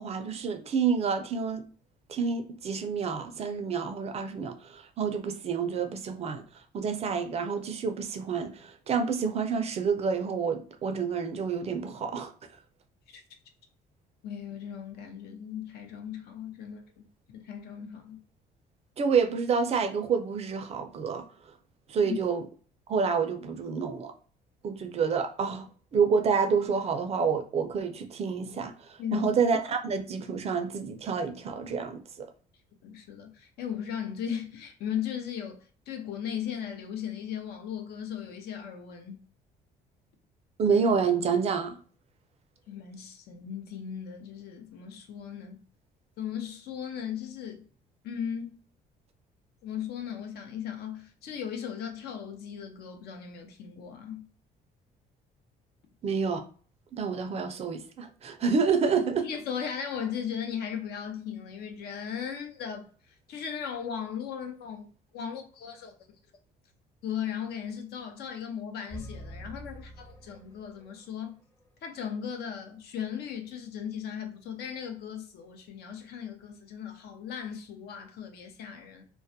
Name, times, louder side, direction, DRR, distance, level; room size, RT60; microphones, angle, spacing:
voice 1, 0.0-1.6 2.1-6.4 6.7-12.3 19.0-21.3 21.9-22.4 22.9-24.1 24.6-32.3 40.6-41.8 56.0-56.4 56.9-59.3, right 5 dB, 40° right, 0.4 m, -28 dB
voice 2, 14.2-18.2 22.0-22.1 29.0-29.2 32.8-39.2 42.7-45.6 46.2-47.7 48.0-48.5 49.6-54.3 59.2-62.9 63.3-65.9 67.0-71.4 71.8-79.0, left 8 dB, 70° left, 0.6 m, -37 dB
sound 1, 68.9-71.0, right 1 dB, 15° left, 0.6 m, -45 dB
2.2 x 2.1 x 2.6 m
cardioid pair, 110°, 17 cm